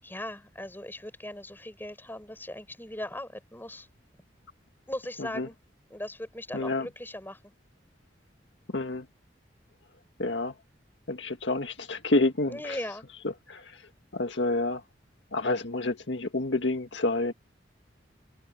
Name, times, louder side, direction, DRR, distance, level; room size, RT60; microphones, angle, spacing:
voice 1, 0.0-3.9 4.9-5.6 5.9-7.5 12.4-13.1, left 1 dB, 10° left, 7.0 m, -39 dB
voice 2, 6.5-6.9 8.7-9.1 10.2-10.5 11.1-12.6 13.5-13.8 14.1-14.8 15.3-17.3, left 2 dB, 80° left, 1.8 m, -28 dB
head